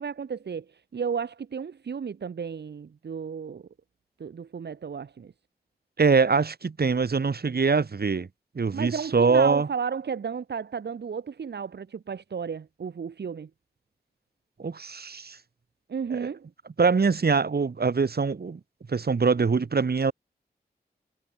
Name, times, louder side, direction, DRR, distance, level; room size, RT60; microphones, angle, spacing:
voice 1, 0.0-3.7 4.2-5.3 8.7-13.5 15.9-16.5, right 6 dB, 85° right, 2.1 m, -33 dB
voice 2, 6.0-8.3 8.5-9.7 14.6-15.4 16.1-16.3 16.8-18.6 18.9-20.1, right 5 dB, 65° right, 4.8 m, -23 dB
cardioid pair, 50°, 17 cm